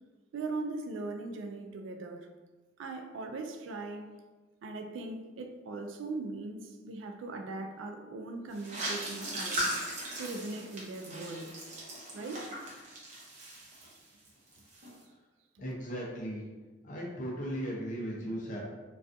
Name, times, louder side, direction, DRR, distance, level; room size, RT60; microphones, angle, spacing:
voice 1, 0.3-2.3 2.8-4.1 4.6-9.8 10.2-11.5 12.1-12.5, right 3 dB, 80° right, 5 dB, 0.3 m, -39 dB
sound 1, 8.5-14.3 14.5-14.9, right 1 dB, 40° right, 0.7 m, -38 dB
voice 2, 15.6-16.4 16.8-18.6, equal, 45° left, -3 dB, 0.6 m, -37 dB
2.3 x 2.3 x 2.5 m, 1.2 s
head